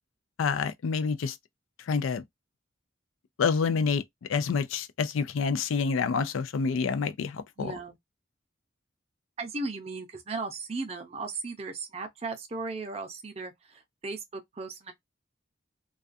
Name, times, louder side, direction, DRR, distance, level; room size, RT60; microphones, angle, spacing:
voice 1, 0.4-1.4 1.9-2.2 3.4-4.0 4.3-7.7, left 5 dB, 85° left, 0.4 m, -27 dB
voice 2, 7.6-8.0 9.4-14.9, right 3 dB, 30° right, 0.5 m, -36 dB
2.3 x 2.3 x 2.5 m
head